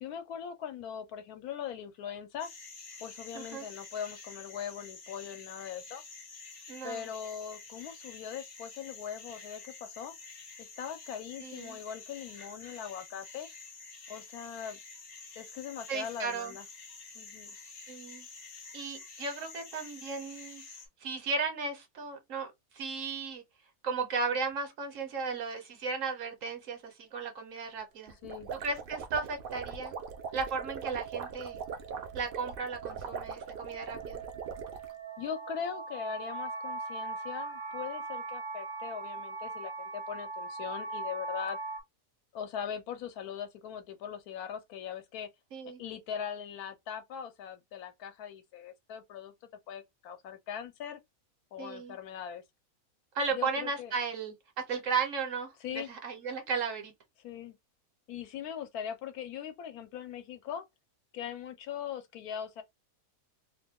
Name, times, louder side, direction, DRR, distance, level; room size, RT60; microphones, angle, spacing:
voice 1, 0.0-2.5 3.0-6.0 6.8-10.1 10.6-13.5 14.1-14.8 15.4-16.7 17.1-17.5 28.2-28.5 35.2-41.6 42.3-45.3 45.8-49.3 49.7-51.0 51.5-52.4 53.3-53.9 55.6-55.9 57.2-57.6 58.1-60.7 61.1-62.6, left 8 dB, 80° left, 1.1 m, -40 dB
sound 1, 2.4-20.9, left 4 dB, 50° left, 0.5 m, -49 dB
voice 2, 3.3-3.7 6.7-7.1 11.4-11.8 15.9-16.6 17.9-18.3 18.7-20.6 21.0-23.4 23.8-28.2 28.5-29.9 30.3-31.6 32.1-34.2 45.5-45.8 51.6-52.0 53.1-56.9, right 4 dB, 60° right, 1.1 m, -35 dB
sound 2, 28.1-34.9, right 6 dB, 90° right, 0.4 m, -41 dB
sound 3, 29.1-41.8, right 3 dB, 45° right, 0.8 m, -41 dB
2.7 x 2.2 x 3.4 m
omnidirectional pair, 1.6 m